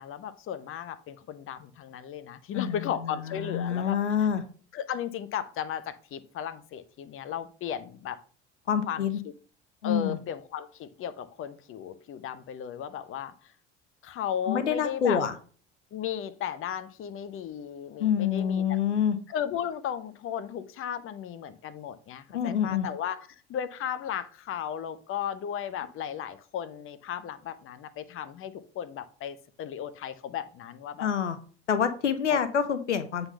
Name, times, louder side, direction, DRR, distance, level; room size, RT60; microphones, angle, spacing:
voice 1, 0.0-4.3 4.7-8.2 8.9-9.3 9.8-13.5 14.0-15.2 15.9-18.8 19.3-31.1 32.3-32.4, left 9 dB, 35° left, 12 dB, 0.8 m, -35 dB
voice 2, 3.4-4.4 8.7-9.2 9.8-10.2 14.5-15.3 18.0-19.2 22.3-22.9 31.0-31.4 31.7-33.3, left 8 dB, 80° left, 11 dB, 0.8 m, -26 dB
7.8 x 4.0 x 5.5 m, 0.42 s
figure-of-eight pair, 65°, 35 cm